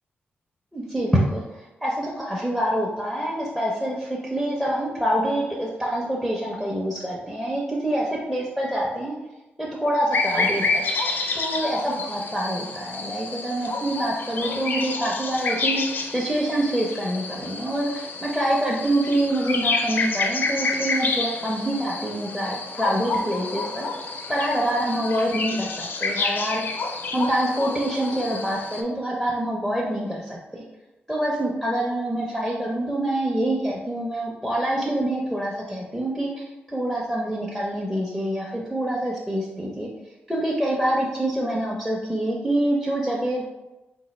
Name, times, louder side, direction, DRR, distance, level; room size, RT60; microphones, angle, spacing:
voice 1, 0.7-1.4 1.8-9.1 9.6-10.9 11.3-15.8 16.1-23.9 24.3-26.8 27.1-30.6 31.1-39.9 40.3-43.4, right 1 dB, 5° right, -4 dB, 0.5 m, -26 dB
sound 1, 10.1-28.8, left 3 dB, 55° left, 0.4 m, -29 dB
4.0 x 2.5 x 4.0 m, 1.0 s
wide cardioid pair, 175°, 4 cm